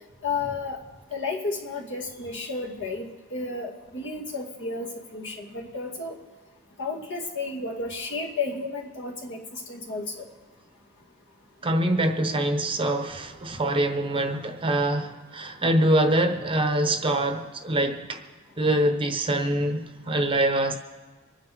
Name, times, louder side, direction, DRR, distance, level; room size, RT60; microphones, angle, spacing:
voice 1, 0.2-0.8 1.1-6.1 6.8-10.2, left 3 dB, 55° left, 2.3 m, -32 dB
voice 2, 11.6-18.2 18.6-20.7, right 1 dB, 25° right, 1.0 m, -24 dB
25.0 x 9.9 x 3.6 m
head